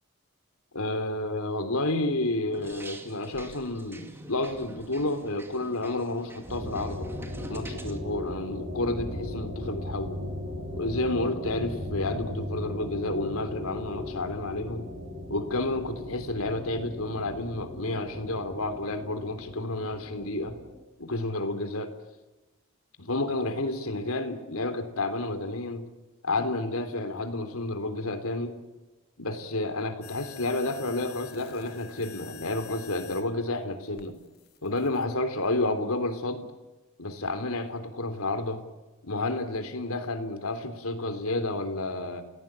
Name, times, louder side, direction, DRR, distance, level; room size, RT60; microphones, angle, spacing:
voice 1, 0.7-7.1 7.5-10.2 10.7-14.9 15.3-20.6 21.0-22.0 23.0-25.9 26.2-28.6 29.2-34.1 34.6-36.5 37.0-38.6 39.0-42.2, left 2 dB, 75° left, 9 dB, 3.4 m, -30 dB
sound 1, 2.5-8.0, right 1 dB, 10° right, 2.3 m, -46 dB
sound 2, 6.5-20.8, left 1 dB, 45° right, 7.7 m, -38 dB
sound 3, 30.0-33.3 34.0-35.0, left 9 dB, 45° left, 2.3 m, -47 dB
30.0 x 17.5 x 8.9 m, 1.1 s
head